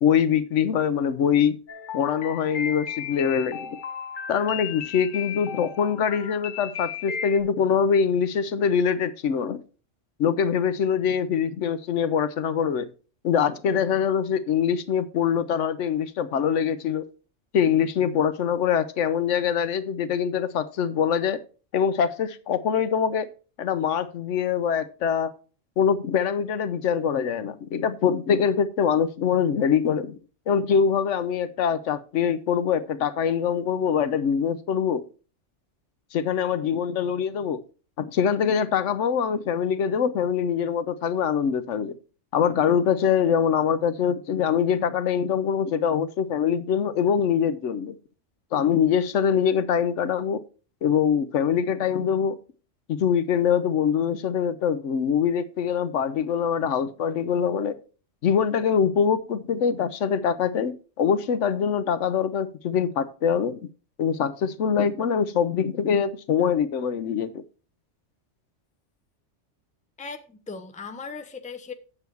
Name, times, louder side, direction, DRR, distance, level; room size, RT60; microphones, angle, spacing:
voice 1, 0.0-1.6 1.9-3.8 4.3-9.6 10.2-12.9 13.2-17.0 17.5-21.4 21.7-23.3 23.6-25.3 25.8-30.2 30.5-35.0 36.1-37.6 38.0-41.9 42.3-48.0 48.5-50.4 50.8-52.4 52.9-57.8 58.2-63.6 64.0-67.4, left 7 dB, 80° left, 1.1 m, -24 dB
sound 1, 1.7-7.4, left 7 dB, 45° left, 0.9 m, -35 dB
voice 2, 70.0-71.7, left 5 dB, 10° left, 0.6 m, -38 dB
8.6 x 6.9 x 4.6 m
omnidirectional pair, 1.3 m